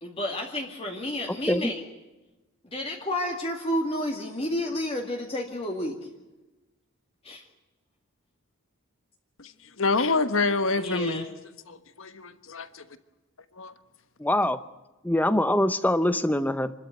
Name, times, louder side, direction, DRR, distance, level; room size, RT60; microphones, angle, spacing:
voice 1, 0.0-1.8 2.6-6.0 7.2-7.4 10.8-11.3, left 1 dB, 25° left, 2.1 m, -31 dB
voice 2, 9.8-11.2 11.7-12.8 13.6-13.7, left 3 dB, 65° left, 1.3 m, -27 dB
voice 3, 14.2-14.6 15.0-16.7, left 1 dB, 10° left, 0.7 m, -23 dB
28.0 x 13.0 x 9.2 m
head